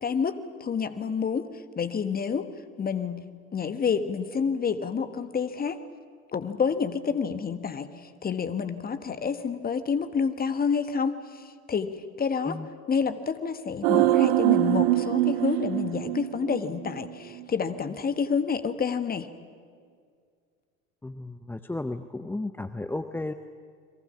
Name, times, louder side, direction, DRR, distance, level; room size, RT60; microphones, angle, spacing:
voice 1, 0.0-2.5 2.8-5.8 6.3-12.6 12.9-19.3, left 6 dB, 20° left, 10 dB, 1.4 m, -29 dB
sound 1, 13.8-17.1 17.4-17.5, right 15 dB, 50° right, 0.8 m, -24 dB
voice 2, 21.0-23.3, left 2 dB, 5° left, 10 dB, 0.6 m, -34 dB
30.0 x 23.0 x 6.2 m, 2.1 s
figure-of-eight pair, 75°, 42 cm